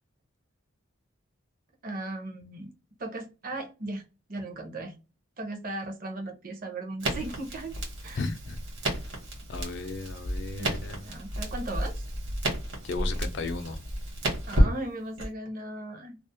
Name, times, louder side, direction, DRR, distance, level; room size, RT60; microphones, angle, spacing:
voice 1, 1.8-2.7 3.0-4.0 4.3-5.0 5.4-7.7 8.0-8.3 10.6-12.0 14.5-16.2, right 2 dB, 40° right, 0.6 m, -37 dB
Crackle, 7.0-15.3, right 1 dB, 60° right, 1.0 m, -31 dB
voice 2, 8.2-8.6 9.5-11.0 12.8-13.8, left 3 dB, 55° left, 0.4 m, -35 dB
2.3 x 2.0 x 2.6 m
head